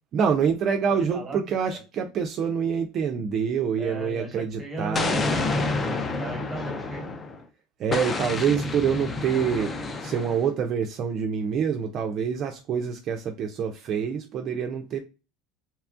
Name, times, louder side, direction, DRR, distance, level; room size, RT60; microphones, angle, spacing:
voice 1, 0.1-5.3 7.8-9.7 10.0-15.0, right 7 dB, 45° right, 0.4 m, -26 dB
voice 2, 0.9-1.4 3.8-7.1, right 2 dB, 15° right, 1.1 m, -36 dB
Explosion, 4.9-7.4 7.9-10.5, left 3 dB, 25° left, 0.4 m, -29 dB
2.9 x 2.3 x 2.4 m
supercardioid pair, 110°, 0 cm